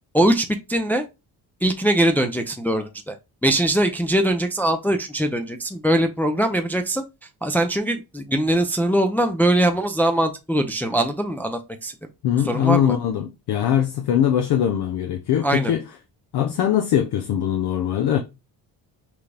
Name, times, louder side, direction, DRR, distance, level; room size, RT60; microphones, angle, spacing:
voice 1, 0.1-1.0 1.6-3.1 3.4-7.0 7.4-11.9 12.5-12.9 15.4-15.7, right 1 dB, 5° left, 0.4 m, -21 dB
voice 2, 12.2-15.8 16.3-18.2, left 10 dB, 70° left, 0.7 m, -21 dB
6.1 x 2.2 x 3.3 m
cardioid pair, 110°, 40 cm